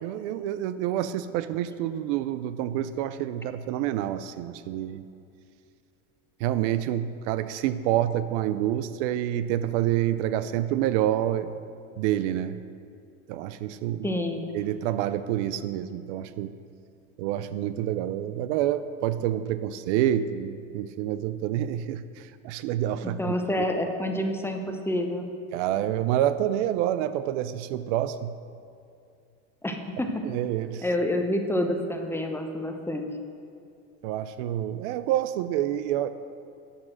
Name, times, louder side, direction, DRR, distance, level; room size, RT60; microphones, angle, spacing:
voice 1, 0.0-5.1 6.4-11.5 12.0-12.6 13.3-14.1 14.5-16.5 17.2-23.3 25.5-28.3 30.2-30.8 34.0-36.1, right 12 dB, 65° right, 13 dB, 0.5 m, -28 dB
voice 2, 14.0-14.5 23.0-25.3 29.6-30.2 30.8-33.2, left 1 dB, 5° left, 4 dB, 0.9 m, -28 dB
10.0 x 6.1 x 6.0 m, 2.5 s
hypercardioid pair, 100°, 38 cm